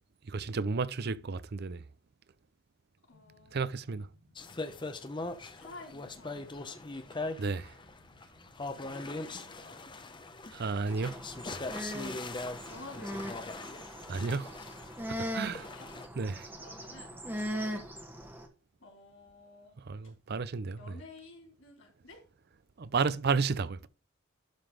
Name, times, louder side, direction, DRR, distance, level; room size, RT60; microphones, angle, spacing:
voice 1, 0.3-1.8 3.5-4.1 7.4-7.7 10.5-11.2 14.1-14.5 15.3-15.6 16.2-16.5 19.9-20.9 22.8-23.9, right 4 dB, 50° right, 0.5 m, -32 dB
voice 2, 3.1-3.7 5.6-6.7 8.9-9.8 12.7-13.5 15.5-15.9 16.6-17.2 18.8-19.8 20.8-22.2, left 2 dB, 65° left, 4.0 m, -51 dB
sound 1, 3.1-13.1, left 1 dB, 70° right, 5.1 m, -64 dB
sound 2, 4.4-16.1, left 2 dB, 20° left, 0.8 m, -41 dB
sound 3, 10.9-18.5, equal, 10° right, 1.2 m, -40 dB
11.5 x 3.9 x 5.0 m
head